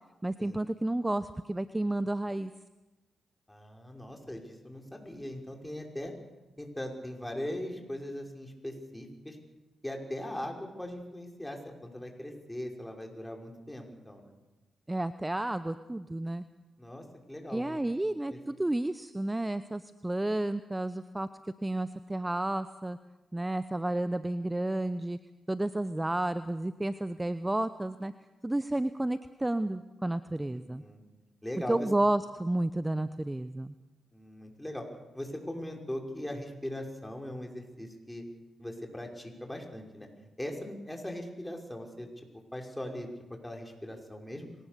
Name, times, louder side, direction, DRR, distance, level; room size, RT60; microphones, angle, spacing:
voice 1, 0.2-2.5 14.9-16.4 17.5-21.3 21.6-23.0 23.3-25.2 25.5-28.1 28.4-30.8 31.7-33.7, right 1 dB, 20° right, 13 dB, 0.8 m, -31 dB
voice 2, 3.5-6.1 6.6-9.4 9.8-14.3 16.8-17.8 18.3-18.4 30.5-31.0 31.4-31.9 34.1-34.9 35.1-38.2 38.6-40.1 40.4-42.1 42.5-43.1 43.4-44.5, left 1 dB, 10° left, 2 dB, 5.9 m, -40 dB
25.0 x 19.0 x 6.9 m, 1.1 s
hypercardioid pair, 40°, 0 cm